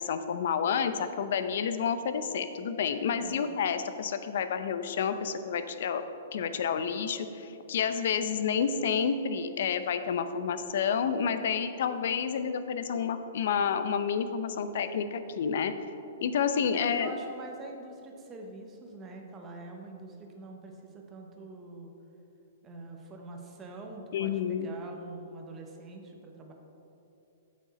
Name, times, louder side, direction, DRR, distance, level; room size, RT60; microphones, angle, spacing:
voice 1, 0.0-6.0 6.3-15.7 16.2-17.1 24.1-24.7, left 7 dB, 65° left, 10 dB, 0.5 m, -29 dB
voice 2, 3.1-3.5 16.7-21.9 22.6-26.5, right 2 dB, 20° right, 2 dB, 0.9 m, -45 dB
7.8 x 6.4 x 4.2 m, 2.9 s
hypercardioid pair, 155°, 0 cm